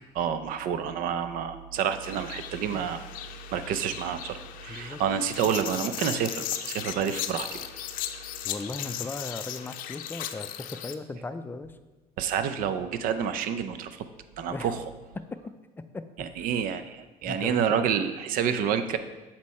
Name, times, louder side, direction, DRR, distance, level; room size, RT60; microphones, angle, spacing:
voice 1, 0.1-3.0 3.5-7.7 12.2-14.1 14.4-14.8 16.2-19.0, right 8 dB, 65° right, 11 dB, 0.6 m, -29 dB
sound 1, 2.0-10.9, left 11 dB, 65° left, 0.5 m, -37 dB
voice 2, 4.7-5.0 8.4-11.8 14.5-14.8 15.2-15.4 15.9-16.1 17.2-17.9, left 3 dB, 15° left, 9 dB, 0.4 m, -37 dB
8.1 x 4.4 x 4.3 m, 1.2 s
cardioid pair, 110°, 16 cm